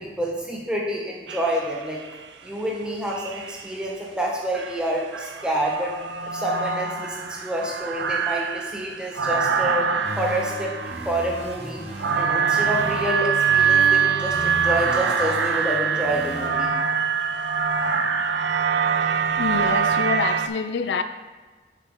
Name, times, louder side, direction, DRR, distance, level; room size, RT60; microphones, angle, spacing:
voice 1, 0.0-2.0 2.4-5.9 6.3-10.7 11.0-11.8 12.1-16.7, right 1 dB, 5° right, -3 dB, 1.2 m, -28 dB
sound 1, 1.3-2.1 3.1-3.8 4.5-20.5, right 6 dB, 80° right, 0.5 m, -24 dB
sound 2, 10.0-13.1 13.5-16.5, equal, 35° right, 1.1 m, -36 dB
voice 2, 19.1-21.0, left 5 dB, 75° left, 10 dB, 0.4 m, -27 dB
8.1 x 5.9 x 3.8 m, 1.3 s
head